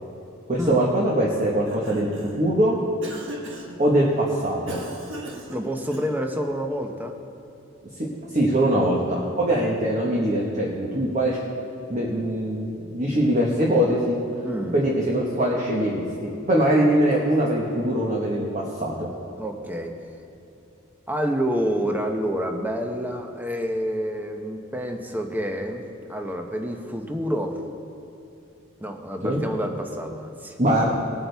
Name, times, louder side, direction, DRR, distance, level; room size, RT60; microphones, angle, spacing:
voice 1, 0.5-2.1 2.4-2.8 3.8-4.8 8.3-11.4 11.9-14.2 14.7-19.1 29.2-29.4 30.6-30.9, right 1 dB, 35° right, -3 dB, 1.3 m, -22 dB
Cough, 1.6-2.5 3.0-3.8 4.7-6.3, right 1 dB, 65° right, 1.4 m, -38 dB
voice 2, 5.5-7.2 14.4-14.8 19.4-20.0 21.1-25.8 26.1-27.6 28.8-30.6, equal, 10° right, 3 dB, 0.8 m, -28 dB
20.0 x 8.6 x 3.5 m, 2.9 s
head